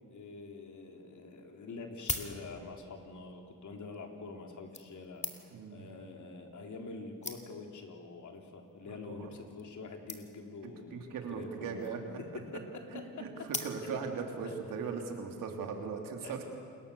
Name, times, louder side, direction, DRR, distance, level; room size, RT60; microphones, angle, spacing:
voice 1, 0.1-5.2 5.7-11.8 12.5-12.6 13.8-14.0 14.4-14.5 16.2-16.5, left 3 dB, 60° left, 3 dB, 3.7 m, -46 dB
sound 1, 1.8-2.9 3.8-4.0 4.7-5.7 6.6-6.7 6.9-7.0 7.2-7.8 8.5-8.7 9.0-9.1 9.3-9.4 9.6-9.7 10.1-10.6 11.6-12.1 13.5-14.2 14.7-14.8, left 2 dB, 20° left, 2.5 m, -41 dB
voice 2, 5.5-5.9 8.8-9.3 10.6-12.0 12.9-16.5, right 5 dB, 85° right, 3 dB, 3.1 m, -39 dB
28.5 x 21.5 x 7.0 m, 2.4 s
cardioid pair, 75°, 33 cm